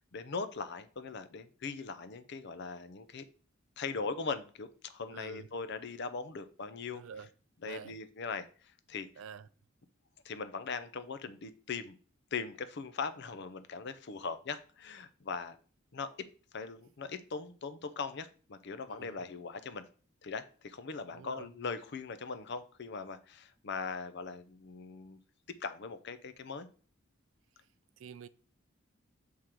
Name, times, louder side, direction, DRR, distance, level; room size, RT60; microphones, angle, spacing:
voice 1, 0.1-3.2 3.8-7.0 7.6-8.5 8.9-9.1 10.2-12.0 12.3-15.6 15.9-16.1 16.5-19.9 20.2-25.2 25.6-26.7, left 4 dB, 55° left, 0.6 m, -40 dB
voice 2, 5.1-5.5 6.9-7.3 7.6-8.0 9.2-9.5 18.9-19.2 21.1-21.5 28.0-28.3, right 7 dB, 70° right, 0.4 m, -48 dB
6.4 x 3.7 x 4.4 m
head